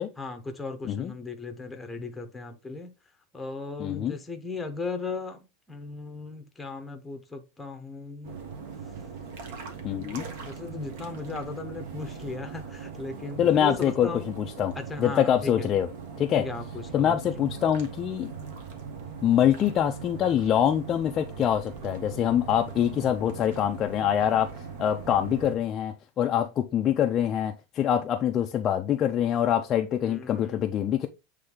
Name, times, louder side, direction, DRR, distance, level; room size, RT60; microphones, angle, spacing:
voice 1, 0.2-2.9 3.3-8.4 9.9-14.3 14.8-15.7 16.3-17.2 30.0-30.6, left 3 dB, 5° left, 0.8 m, -37 dB
voice 2, 3.8-4.2 9.8-10.3 13.4-15.9 16.2-16.5 16.9-18.3 19.2-24.5 24.8-31.1, left 10 dB, 25° left, 0.4 m, -25 dB
sound 1, 8.2-25.6, right 5 dB, 60° right, 1.5 m, -40 dB
7.8 x 3.3 x 3.8 m
supercardioid pair, 170°, 0 cm